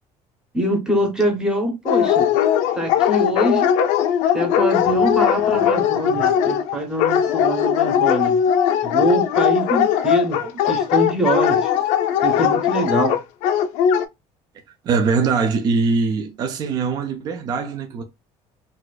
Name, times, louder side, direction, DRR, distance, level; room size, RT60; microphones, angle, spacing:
voice 1, 0.5-2.3 2.8-3.7 4.3-8.4 8.8-11.7 12.2-13.2, right 1 dB, 5° right, 0.7 m, -23 dB
Dog, 1.9-14.1, left 9 dB, 80° left, 0.4 m, -19 dB
voice 2, 14.8-18.0, right 4 dB, 35° right, 0.4 m, -22 dB
4.0 x 2.3 x 2.3 m
cardioid pair, 175°, 12 cm